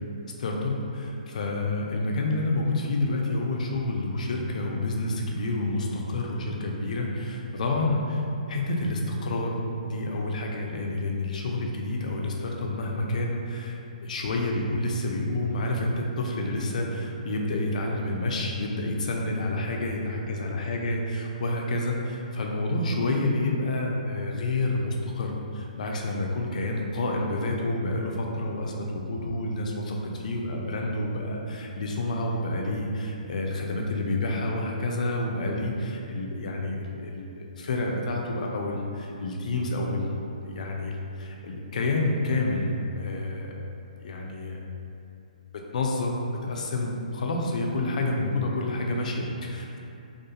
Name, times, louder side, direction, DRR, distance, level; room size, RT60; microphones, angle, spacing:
voice 1, 0.4-9.6 9.8-43.6 44.0-44.6 45.7-46.2 46.4-49.8, left 2 dB, 60° left, 0 dB, 0.4 m, -29 dB
2.4 x 2.3 x 2.7 m, 2.7 s
hypercardioid pair, 155°, 5 cm